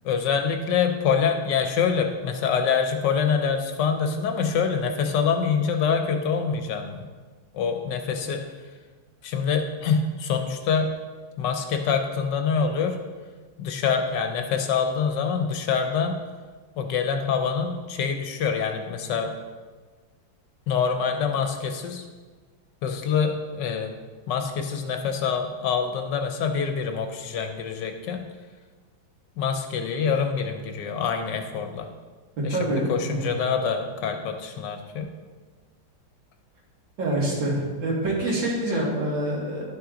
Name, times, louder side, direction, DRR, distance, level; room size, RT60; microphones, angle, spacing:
voice 1, 0.0-7.0 7.5-8.4 9.2-10.9 11.4-13.0 13.6-16.2 16.8-19.3 20.7-22.0 22.8-23.9 24.3-28.2 29.4-31.9 32.4-35.1, left 6 dB, 70° left, 5 dB, 1.3 m, -25 dB
voice 2, 32.5-33.3 37.0-39.6, right 1 dB, 75° right, -4 dB, 2.8 m, -26 dB
11.0 x 5.9 x 3.8 m, 1.4 s
omnidirectional pair, 2.1 m